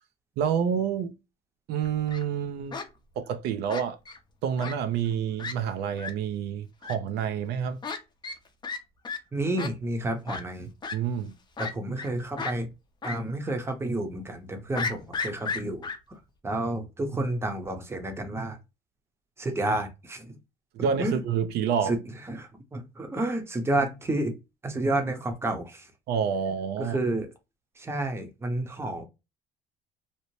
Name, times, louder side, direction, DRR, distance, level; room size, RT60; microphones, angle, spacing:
voice 1, 0.4-1.1 1.7-2.8 3.2-4.0 4.4-7.8 10.9-11.3 20.7-22.0 26.1-27.0, right 7 dB, 75° right, 0.4 m, -28 dB
Fowl, 1.8-2.2 2.7-2.9 3.7-4.2 4.6-4.7 5.1-5.2 5.4-5.5 6.0-6.1 6.8-6.9 7.8-8.0 8.2-8.4 8.6-8.8 9.0-9.2 9.6-9.7 10.3-10.4 10.8-11.0 11.6-12.1 12.4-12.5 13.0-13.2 13.5-13.6 14.7-16.0, left 4 dB, 25° left, 0.5 m, -33 dB
voice 2, 9.3-10.7 11.6-12.7 13.0-15.8 16.4-18.6 19.4-20.3 20.8-21.2 21.9-22.0 22.3-24.3 24.6-25.9 26.8-27.3 27.8-29.0, right 1 dB, 15° right, 0.7 m, -30 dB
2.7 x 2.0 x 3.0 m
cardioid pair, 110°, 17 cm